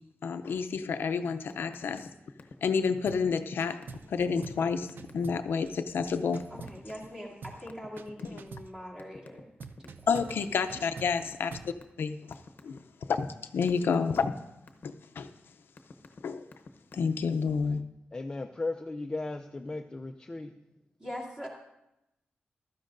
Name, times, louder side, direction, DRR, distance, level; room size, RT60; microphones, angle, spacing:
voice 1, 0.2-2.1 2.6-4.9 5.1-6.4 8.2-8.4 10.1-11.6 12.0-12.2 12.6-12.8 13.1-13.3 13.5-14.3 14.8-15.3 16.2-16.4 16.9-17.9, left 5 dB, 75° left, 9 dB, 0.5 m, -29 dB
sound 1, 1.5-2.1 2.4-2.6 2.9-3.5 3.8-4.0 4.4-4.6 4.9-5.2 6.4-7.1 7.7-8.6 9.0-10.2 10.7-12.0 12.3-12.8 13.2-14.9 15.5-16.2 16.5-16.9, left 4 dB, 50° left, 0.8 m, -48 dB
sound 2, 3.1-3.3 3.6-4.1 4.4-4.7 5.0-7.1 7.4-7.7 8.0-8.8 9.6-11.8, right 5 dB, 65° right, 0.4 m, -46 dB
voice 2, 6.5-9.4 9.8-9.9 21.0-21.5, equal, 15° right, -4 dB, 2.4 m, -42 dB
voice 3, 18.1-20.5, left 2 dB, 20° left, 4 dB, 0.4 m, -36 dB
15.0 x 12.5 x 2.6 m, 0.88 s
wide cardioid pair, 175°, 4 cm